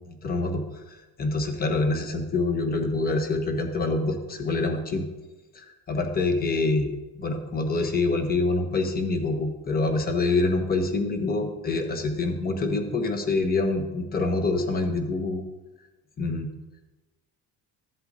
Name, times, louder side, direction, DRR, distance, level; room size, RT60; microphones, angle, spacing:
voice 1, 0.1-0.6 0.9-5.1 5.5-15.4 16.2-16.5, left 3 dB, 25° left, 5 dB, 1.0 m, -26 dB
14.5 x 7.8 x 2.7 m, 1.1 s
cardioid pair, 155°, 39 cm